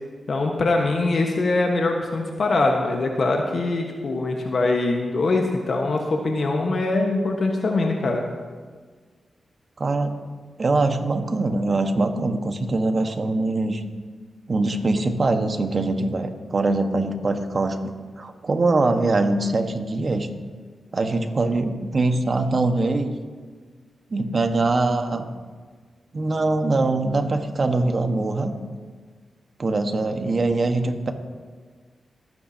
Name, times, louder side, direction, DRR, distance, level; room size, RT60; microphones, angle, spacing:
voice 1, 0.3-8.2, left 2 dB, 65° left, 1 dB, 1.3 m, -23 dB
voice 2, 9.8-10.2 10.6-13.8 14.5-17.8 18.2-20.3 20.9-23.1 24.1-25.3 26.1-28.5 29.6-31.1, right 2 dB, 50° right, 6 dB, 1.4 m, -23 dB
26.5 x 9.4 x 2.9 m, 1.5 s
cardioid pair, 50°, 0 cm